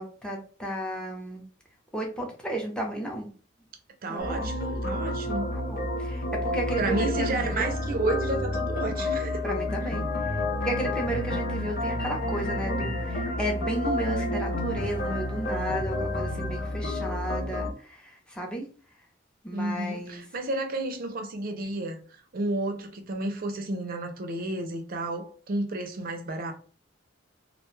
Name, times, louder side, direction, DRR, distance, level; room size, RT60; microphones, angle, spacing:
voice 1, 0.0-1.4 1.9-3.3 4.1-4.5 5.5-7.7 9.4-10.3 10.6-18.7 19.4-20.2, right 1 dB, 5° left, 0.6 m, -33 dB
voice 2, 4.0-5.5 6.8-9.3 19.5-22.0 22.3-26.5, right 2 dB, 50° right, 0.5 m, -31 dB
sound 1, 4.2-17.7, left 1 dB, 55° left, 0.7 m, -30 dB
2.4 x 2.2 x 3.0 m
head